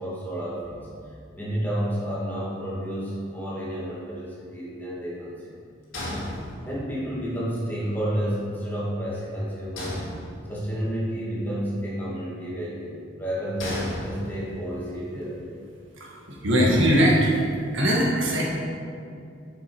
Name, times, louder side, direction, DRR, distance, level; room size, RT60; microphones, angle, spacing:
voice 1, 0.0-5.6 6.4-10.0 10.5-12.9 13.2-15.6, equal, 10° left, -7 dB, 1.8 m, -31 dB
sound 1, 5.9-7.0 9.8-10.8 13.6-14.7, left 1 dB, 85° left, 2.1 m, -34 dB
voice 2, 16.4-17.3 17.7-18.4, equal, 80° right, -3 dB, 1.7 m, -20 dB
7.2 x 6.5 x 4.8 m, 2.4 s
head